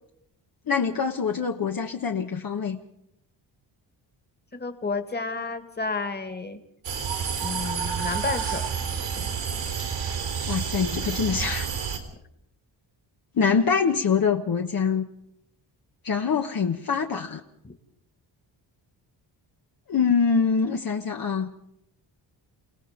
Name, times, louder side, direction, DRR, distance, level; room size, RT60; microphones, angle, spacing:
voice 1, 0.7-2.8 10.5-11.7 13.3-15.1 16.0-17.4 19.9-21.5, left 6 dB, 50° left, 3 dB, 1.2 m, -24 dB
voice 2, 4.5-6.6 7.4-8.7 9.1-9.3 17.6-17.7, left 3 dB, 20° left, 8 dB, 2.0 m, -31 dB
sound 1, 6.8-12.0, right 7 dB, 90° right, 4.1 m, -29 dB
29.0 x 17.5 x 5.2 m, 0.78 s
cardioid pair, 105°, 45 cm